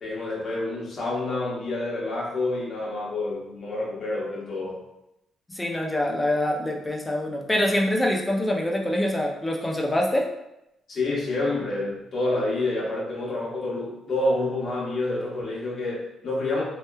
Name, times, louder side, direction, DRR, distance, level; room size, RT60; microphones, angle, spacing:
voice 1, 0.0-4.8 10.9-16.6, left 2 dB, 50° left, -5 dB, 1.0 m, -28 dB
voice 2, 5.5-10.3, left 1 dB, 15° left, 0 dB, 0.4 m, -25 dB
2.9 x 2.2 x 2.2 m, 0.87 s
cardioid pair, 90°, 0 cm